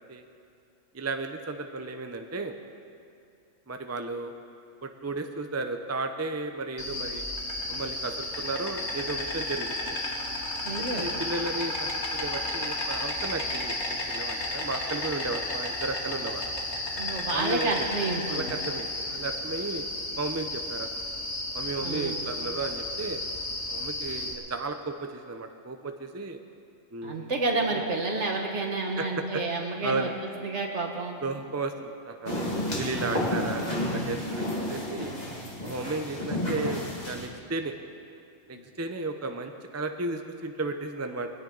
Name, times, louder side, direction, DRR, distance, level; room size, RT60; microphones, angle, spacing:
voice 1, 0.9-2.6 3.7-4.3 4.8-7.3 7.7-10.0 10.8-16.6 17.3-17.9 18.3-19.9 20.2-21.0 21.5-23.2 23.7-26.4 26.9-27.3 27.7-27.8 29.0-29.1 29.3-29.4 29.8-30.1 31.2-32.4 32.7-35.1 35.6-37.7 38.5-41.3, right 3 dB, 15° right, 6 dB, 0.6 m, -34 dB
Insect, 6.8-24.3, left 1 dB, 65° left, 2.2 m, -33 dB
voice 2, 10.6-11.1 17.0-18.5 21.8-22.2 27.0-30.1 30.4-31.2, right 3 dB, 65° right, 0 dB, 2.1 m, -30 dB
sound 1, 32.3-37.3, left 1 dB, 35° left, 2.1 m, -31 dB
21.5 x 16.5 x 4.0 m, 2.5 s
omnidirectional pair, 1.3 m